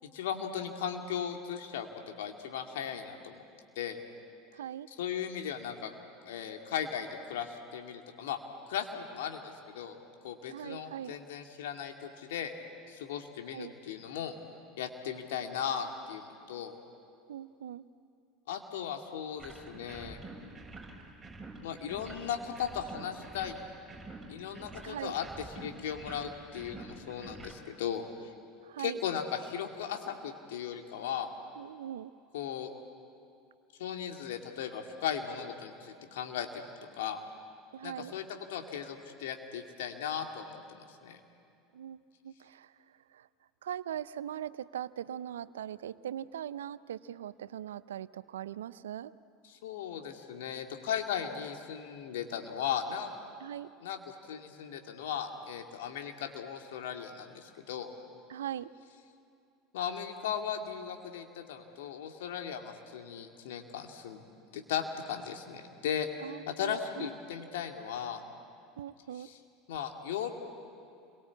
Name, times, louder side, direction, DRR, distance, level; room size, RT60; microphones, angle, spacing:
voice 1, 0.1-3.4 3.8-4.0 5.0-5.9 6.2-8.4 8.7-10.0 10.2-12.5 12.9-14.3 14.8-16.8 18.5-20.2 21.6-23.5 24.3-25.3 25.6-28.3 28.8-31.3 32.3-32.7 33.8-37.2 37.8-41.2 49.5-53.1 53.8-57.9 59.7-64.2 64.5-66.1 66.5-68.2 69.1-69.4 69.7-70.3, left 8 dB, 70° left, 4 dB, 2.4 m, -37 dB
voice 2, 4.5-4.9 10.5-11.1 13.5-13.7 17.3-17.8 24.8-25.2 28.6-29.0 31.6-32.1 37.7-38.1 41.7-42.7 43.1-43.3 43.6-49.1 53.4-53.7 58.3-58.7 66.2-67.1 68.8-69.3, right 10 dB, 80° right, 17 dB, 0.6 m, -40 dB
sound 1, 19.4-27.5, right 2 dB, 15° right, 6.9 m, -48 dB
29.5 x 22.5 x 8.5 m, 2.5 s
hypercardioid pair, 75°, 0 cm